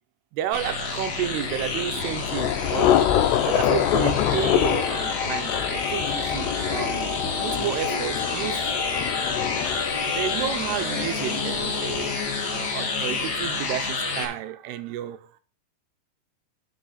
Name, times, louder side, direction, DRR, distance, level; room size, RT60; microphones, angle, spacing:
voice 1, 0.3-3.0 3.4-8.7 10.1-12.2 12.5-15.4, right 12 dB, 80° right, 2.8 m, -31 dB
sound 1, 0.5-14.3, left 4 dB, 50° left, 3.1 m, -29 dB
Thunder / Rain, 1.2-12.8, left 11 dB, 85° left, 2.9 m, -27 dB
sound 2, 4.6-10.6, left 6 dB, 70° left, 2.2 m, -35 dB
10.5 x 6.4 x 4.2 m
omnidirectional pair, 4.7 m